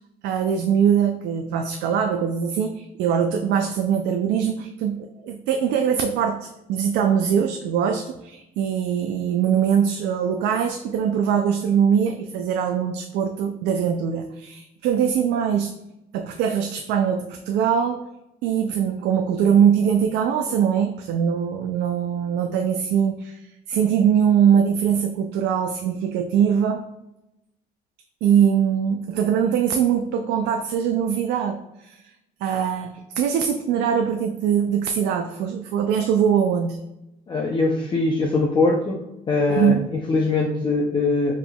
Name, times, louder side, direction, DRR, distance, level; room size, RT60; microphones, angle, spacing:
voice 1, 0.2-15.8 16.1-18.1 18.4-23.4 23.7-26.8 28.2-32.0 32.4-36.8 39.5-39.9, right 8 dB, 80° right, 5 dB, 0.4 m, -22 dB
voice 2, 37.3-39.0 39.3-41.3, left 3 dB, 30° left, -1 dB, 0.5 m, -22 dB
4.9 x 3.5 x 2.2 m, 0.92 s
cardioid pair, 110°, 17 cm